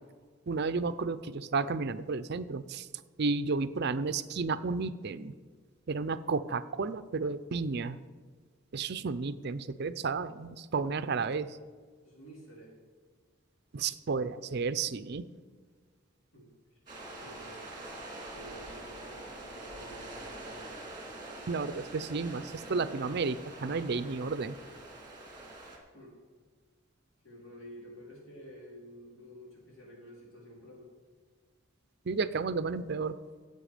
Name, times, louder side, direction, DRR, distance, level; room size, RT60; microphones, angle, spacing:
voice 1, 0.5-2.9 3.2-5.3 5.9-8.0 8.7-11.6 13.7-15.3 21.5-24.6 32.1-33.2, right 4 dB, 55° right, 13 dB, 0.5 m, -32 dB
voice 2, 12.0-12.8 16.3-16.5 17.1-17.7 18.3-20.8 25.9-26.1 27.2-30.9, equal, 85° left, -4 dB, 4.3 m, -51 dB
sound 1, 16.9-25.8, right 2 dB, 20° right, 2.6 m, -45 dB
15.5 x 8.1 x 5.0 m, 1.5 s
head